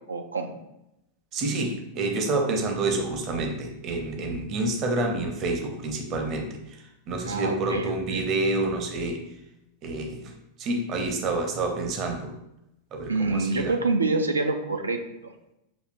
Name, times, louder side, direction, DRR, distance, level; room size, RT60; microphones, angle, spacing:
voice 1, 0.1-0.5 7.3-8.2 13.1-15.3, right 3 dB, 80° right, 5 dB, 0.4 m, -27 dB
voice 2, 1.3-6.5 7.1-9.2 9.8-10.3 10.6-12.3 12.9-13.7, right 2 dB, 35° right, 3 dB, 0.7 m, -28 dB
6.1 x 2.7 x 2.5 m, 0.86 s
figure-of-eight pair, 90°, 0 cm